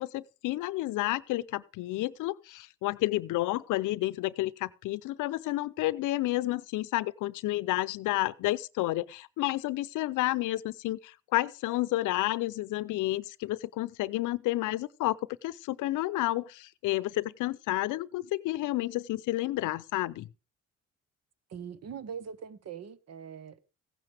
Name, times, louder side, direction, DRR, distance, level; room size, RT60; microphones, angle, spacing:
voice 1, 0.0-20.3, left 17 dB, 90° left, 0.7 m, -30 dB
voice 2, 21.5-23.7, right 7 dB, 55° right, 1.1 m, -42 dB
16.0 x 9.7 x 3.4 m
cardioid pair, 90°, 30 cm